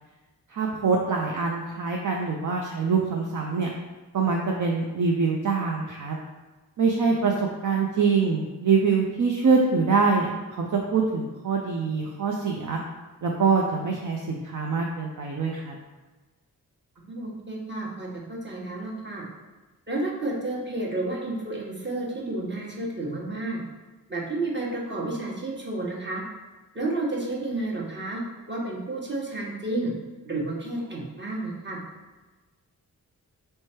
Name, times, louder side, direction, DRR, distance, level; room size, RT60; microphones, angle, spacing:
voice 1, 0.5-3.7 4.1-6.2 6.8-7.3 7.6-12.8 13.2-15.8, right 5 dB, 55° right, 0 dB, 0.5 m, -24 dB
voice 2, 7.1-7.4 17.0-19.2 19.9-23.6 24.1-26.2 26.7-28.2 28.5-29.9 30.2-31.8, right 2 dB, 30° right, -3 dB, 1.2 m, -31 dB
3.3 x 3.1 x 4.4 m, 1.2 s
cardioid pair, 45°, 38 cm